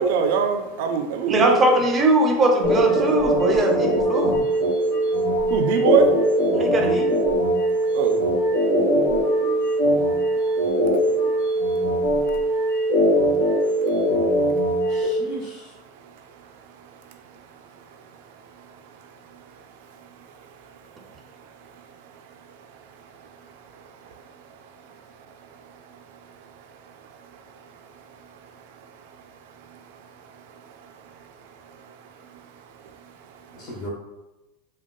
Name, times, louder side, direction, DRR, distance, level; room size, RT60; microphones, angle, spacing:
voice 1, 0.0-1.8 4.7-6.7 7.4-15.4 15.8-33.8, right 6 dB, 70° right, 6 dB, 0.3 m, -32 dB
voice 2, 1.3-4.4 6.5-7.2, right 1 dB, 25° right, 2 dB, 0.6 m, -21 dB
sound 1, 2.6-15.0, right 1 dB, 75° left, 1.0 m, -21 dB
voice 3, 4.1-5.2 14.9-15.7 33.5-33.9, equal, 50° left, -3 dB, 0.6 m, -39 dB
3.6 x 2.2 x 2.2 m, 1.0 s
hypercardioid pair, 105°, 0 cm